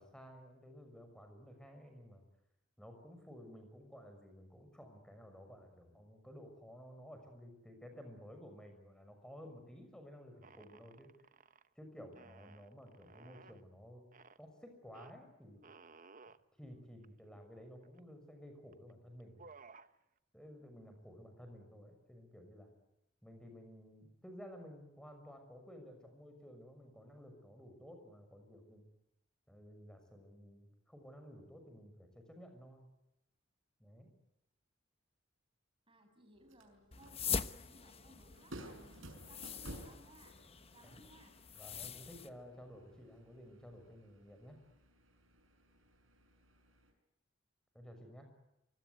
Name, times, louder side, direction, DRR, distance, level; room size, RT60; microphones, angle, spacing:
voice 1, 0.0-2.2 2.8-11.1 11.8-14.0 14.4-15.7 16.6-19.4 20.3-22.7 23.2-28.8 29.5-32.9 33.8-34.1 40.8-41.0 41.6-44.6 47.7-48.3, equal, 5° left, 6 dB, 6.2 m, -54 dB
sound 1, 10.4-11.7 12.1-13.6 14.1-14.4 14.9-15.1 15.6-16.4 17.0-17.1 17.4-18.1 18.7-18.9 19.2-19.9, right 4 dB, 40° right, 1.0 m, -58 dB
voice 2, 35.9-40.4 40.7-41.4, right 1 dB, 25° right, 5 dB, 6.2 m, -63 dB
sound 2, 36.4-46.9, right 1 dB, 75° right, 6.2 m, -56 dB
sound 3, 36.9-42.3, left 6 dB, 30° left, 1.0 m, -43 dB
25.0 x 23.5 x 9.4 m, 0.89 s
head